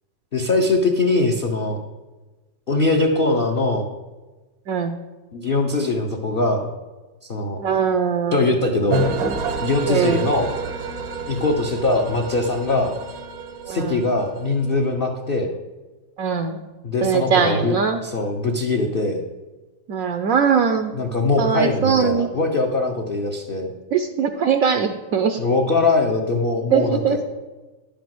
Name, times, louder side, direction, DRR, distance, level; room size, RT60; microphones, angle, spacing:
voice 1, 0.3-1.8 2.7-3.9 5.3-6.7 7.2-7.6 8.3-9.1 9.6-10.5 11.3-12.9 13.7-15.5 16.8-17.8 18.0-19.2 20.9-23.7 25.4-27.3, left 2 dB, 60° left, 1 dB, 0.5 m, -21 dB
voice 2, 7.6-8.4 9.9-10.2 13.7-14.0 16.2-16.6 17.0-18.0 19.9-20.9 21.4-22.3 23.9-25.4 26.7-27.2, right 6 dB, 70° right, 7 dB, 0.8 m, -21 dB
sound 1, 8.9-14.9, right 3 dB, 90° right, 1.8 m, -29 dB
10.5 x 5.1 x 7.7 m, 1.2 s
omnidirectional pair, 2.1 m